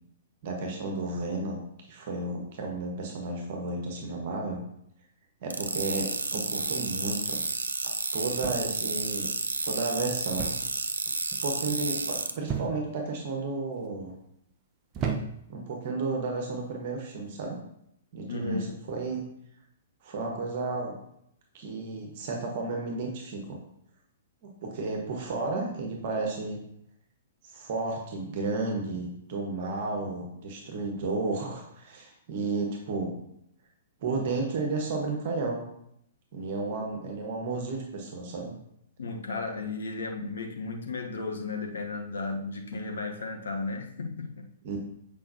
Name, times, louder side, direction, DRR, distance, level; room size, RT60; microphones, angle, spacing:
voice 1, 0.4-1.6 1.9-4.6 5.4-7.4 8.1-9.3 9.6-10.5 11.4-14.1 15.5-17.6 18.1-19.2 20.0-21.0 21.5-23.6 24.6-26.6 27.5-33.1 34.0-35.6 36.3-38.5 44.6-44.8, right 3 dB, 45° right, 1 dB, 1.3 m, -32 dB
sound 1, 5.5-12.3, right 3 dB, 75° right, 0.5 m, -31 dB
sound 2, 8.4-8.9 10.4-10.8 11.1-11.5 12.5-13.0 13.7-14.1 14.9-15.6 16.5-16.8, right 6 dB, 25° right, 0.9 m, -34 dB
voice 2, 18.3-18.8 39.0-44.5, left 3 dB, 65° left, 3 dB, 1.0 m, -34 dB
8.3 x 5.2 x 2.7 m, 0.75 s
figure-of-eight pair, 115°, 0 cm